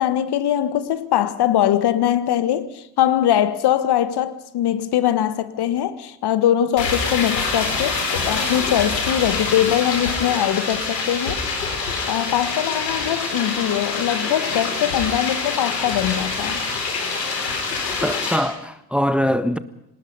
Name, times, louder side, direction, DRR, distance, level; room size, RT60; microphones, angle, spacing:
voice 1, 0.0-11.4 12.1-16.6, left 11 dB, 50° left, 1.6 m, -21 dB
sound 1, 6.8-18.4, left 4 dB, 80° left, 4.3 m, -25 dB
voice 2, 18.0-19.6, equal, ahead, 1.4 m, -22 dB
26.0 x 20.0 x 5.5 m
figure-of-eight pair, 50°, 49 cm